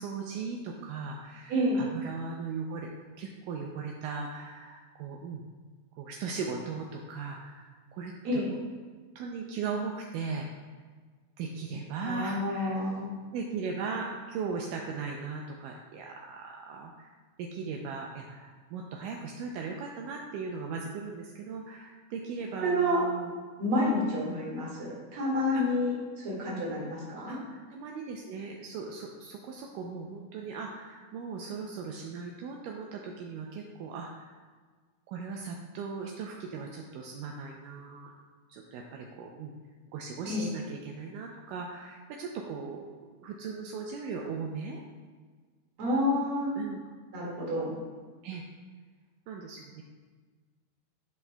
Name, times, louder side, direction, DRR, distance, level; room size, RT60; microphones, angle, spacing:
voice 1, 0.0-2.9 3.2-5.4 6.0-8.7 9.2-10.5 11.4-12.8 13.3-17.1 17.4-23.3 25.5-25.6 27.3-34.4 35.1-38.1 38.5-39.5 39.9-42.8 43.2-44.8 46.6-46.8 48.2-48.4 49.3-49.8, right 5 dB, 85° right, 0 dB, 1.9 m, -38 dB
voice 2, 1.5-1.9 8.2-8.5 12.0-13.1 22.6-23.0 23.6-25.9 26.2-27.4 40.3-40.5 45.8-46.6 47.1-47.8, left 1 dB, 45° right, -5 dB, 2.2 m, -29 dB
12.0 x 5.8 x 2.2 m, 1.5 s
omnidirectional pair, 4.3 m